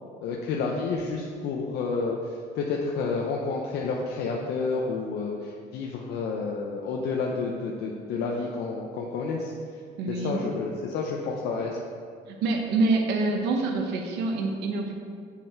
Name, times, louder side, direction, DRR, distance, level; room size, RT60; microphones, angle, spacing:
voice 1, 0.2-9.5 10.1-11.8, left 4 dB, 75° left, -1 dB, 0.9 m, -30 dB
voice 2, 10.0-10.4 12.3-14.9, right 3 dB, 90° right, 3 dB, 1.1 m, -26 dB
7.7 x 7.6 x 4.5 m, 2.2 s
cardioid pair, 110°, 17 cm